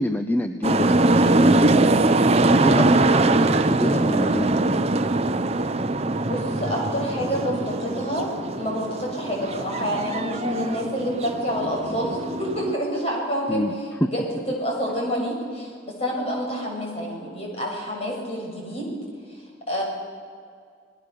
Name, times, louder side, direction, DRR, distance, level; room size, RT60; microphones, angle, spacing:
voice 1, 0.0-2.0 2.6-4.9 13.5-13.7, equal, 10° left, 7 dB, 0.8 m, -27 dB
sound 1, 0.6-12.7, right 2 dB, 35° right, 0.8 m, -22 dB
voice 2, 6.3-13.7 14.0-14.2 14.5-15.7 16.0-18.9 19.3-19.8, equal, 35° left, -1 dB, 6.9 m, -28 dB
28.5 x 20.0 x 6.9 m, 2.1 s
head